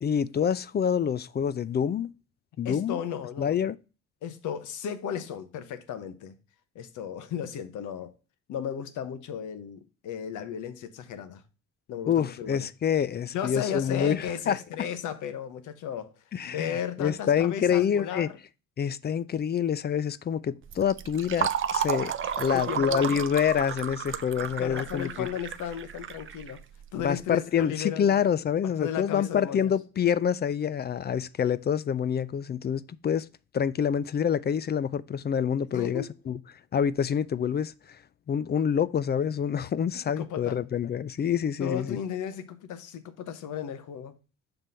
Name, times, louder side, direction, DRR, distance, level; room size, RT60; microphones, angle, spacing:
voice 1, 0.0-2.1 2.6-3.0 3.4-3.8 12.1-14.6 16.3-18.3 18.8-25.3 27.0-33.3 33.5-36.4 36.7-37.7 38.3-42.0, left 8 dB, 35° left, 0.4 m, -27 dB
voice 2, 2.6-3.6 4.2-6.3 6.7-8.1 8.5-11.4 11.9-12.7 13.3-16.1 16.5-18.4 22.2-23.2 24.4-26.6 26.9-28.2 28.6-29.7 35.7-36.1 40.2-40.6 41.6-44.2, left 9 dB, 80° left, 1.0 m, -35 dB
Fill (with liquid), 20.7-27.1, right 8 dB, 45° right, 0.5 m, -32 dB
6.0 x 3.4 x 5.4 m
cardioid pair, 90°, 30 cm